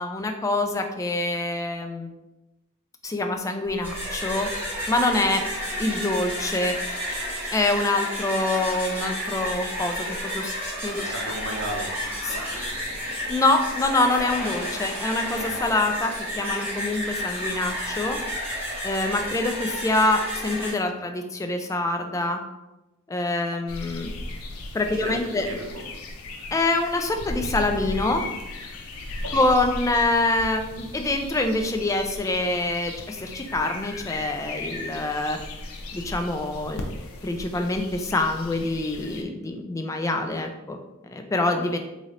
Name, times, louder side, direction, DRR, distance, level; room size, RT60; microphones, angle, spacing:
voice 1, 0.0-2.1 3.0-4.5 4.9-5.4 5.8-6.8 7.5-10.1 10.3-10.5 10.8-11.1 12.2-12.3 13.3-16.1 16.4-18.2 18.8-22.4 23.1-24.1 24.7-25.5 26.5-28.2 29.3-35.4 35.9-36.8 37.2-40.8 41.1-41.8, left 2 dB, 15° left, 5 dB, 0.3 m, -25 dB
sound 1, 3.7-20.7, equal, 10° right, 1.4 m, -31 dB
voice 2, 10.9-12.6 24.9-25.1 25.5-25.8, right 1 dB, 70° right, 0 dB, 0.8 m, -35 dB
sound 2, 23.7-39.2, left 2 dB, 85° left, 0.5 m, -37 dB
3.7 x 2.7 x 3.2 m, 1.0 s
head